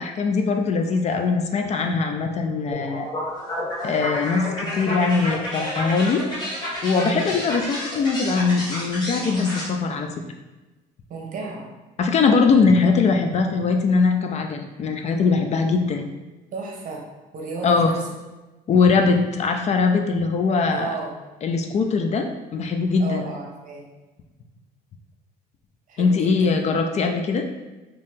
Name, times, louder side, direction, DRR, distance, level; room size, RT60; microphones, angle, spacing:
voice 1, 0.0-3.1 3.8-6.2 6.8-10.1 12.0-16.1 17.6-17.9 18.7-21.0 21.4-23.2 26.0-27.5, left 4 dB, 40° left, 5 dB, 0.4 m, -21 dB
sound 1, 2.7-9.7, left 1 dB, 25° left, 1.3 m, -30 dB
voice 2, 7.0-7.3 11.1-11.7 16.5-17.0 17.3-18.0 20.7-21.1 23.0-23.9 25.9-26.5, right 4 dB, 50° right, 0 dB, 0.8 m, -33 dB
2.9 x 2.7 x 3.5 m, 1.1 s
cardioid pair, 110°, 17 cm